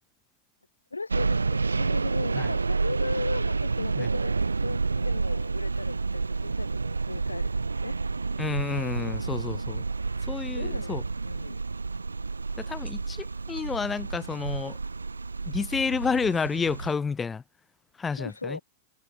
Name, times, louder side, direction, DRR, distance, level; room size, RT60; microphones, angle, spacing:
voice 1, 0.9-8.0 10.5-11.6 18.1-18.6, left 3 dB, 80° left, 0.4 m, -37 dB
sound 1, 1.1-17.0, right 4 dB, 80° right, 0.4 m, -29 dB
voice 2, 8.4-9.8 10.3-11.0 12.6-14.8 15.5-17.4 18.0-18.6, left 5 dB, 15° left, 0.4 m, -30 dB
figure-of-eight pair, 90°, 0 cm